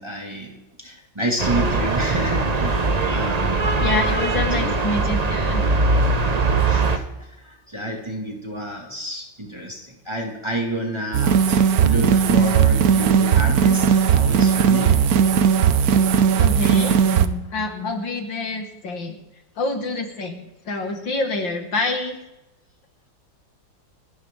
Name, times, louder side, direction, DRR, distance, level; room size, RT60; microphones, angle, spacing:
voice 1, 0.0-3.7 4.1-4.9 6.6-15.1, right 1 dB, 15° right, 0 dB, 2.2 m, -30 dB
sound 1, 1.4-7.0, right 3 dB, 35° right, 0.7 m, -21 dB
voice 2, 3.8-5.6 16.4-19.2 19.6-20.4 20.7-22.2, left 2 dB, 75° left, 3 dB, 2.8 m, -27 dB
sound 2, 11.1-17.3, right 7 dB, 60° right, 1.1 m, -17 dB
30.0 x 11.0 x 3.8 m, 0.98 s
omnidirectional pair, 2.1 m